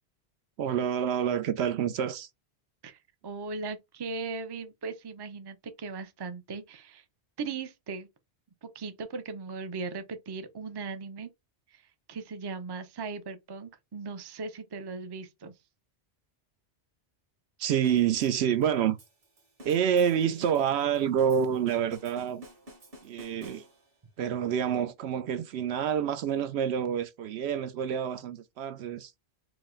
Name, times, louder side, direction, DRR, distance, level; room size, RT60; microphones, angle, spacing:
voice 1, 0.6-2.3 17.6-19.0 19.6-22.4 23.0-23.6 24.2-29.1, right 8 dB, 75° right, 0.8 m, -27 dB
voice 2, 2.8-7.0 7.4-8.1 8.6-11.3 11.7-11.8 12.1-15.5, right 4 dB, 30° right, 0.4 m, -38 dB
sound 1, 17.8-24.0, equal, 55° right, 1.7 m, -52 dB
4.8 x 2.1 x 3.7 m
omnidirectional pair, 1.1 m